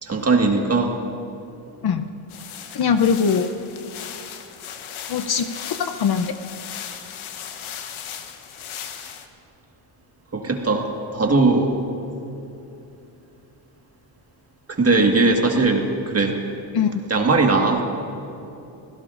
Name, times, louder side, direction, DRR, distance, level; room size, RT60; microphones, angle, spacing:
voice 1, 0.0-1.0 10.3-11.7 14.7-16.4 17.1-17.8, right 3 dB, 30° right, 2 dB, 1.7 m, -19 dB
sound 1, 2.3-9.3, left 8 dB, 90° left, 1.1 m, -37 dB
voice 2, 2.7-3.5 5.1-5.5 5.8-6.3 16.7-17.0, left 6 dB, 55° left, 8 dB, 0.7 m, -21 dB
25.0 x 17.0 x 2.6 m, 2.9 s
cardioid pair, 110°, 47 cm